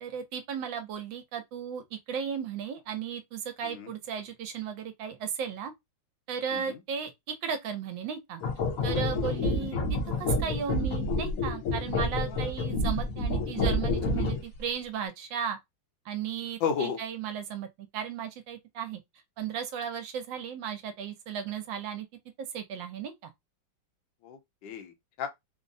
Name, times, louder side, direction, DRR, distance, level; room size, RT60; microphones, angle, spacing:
voice 1, 0.0-5.7 6.3-8.4 8.8-15.6 16.1-19.0 19.4-22.1 22.5-23.3, right 7 dB, 80° right, 1.3 m, -35 dB
voice 2, 3.6-3.9 6.5-6.8 9.1-9.4 12.3-12.5 16.6-17.0 24.2-25.3, left 7 dB, 75° left, 1.5 m, -34 dB
sound 1, 8.4-14.6, left 2 dB, 60° left, 0.9 m, -29 dB
3.7 x 2.0 x 2.5 m
omnidirectional pair, 2.1 m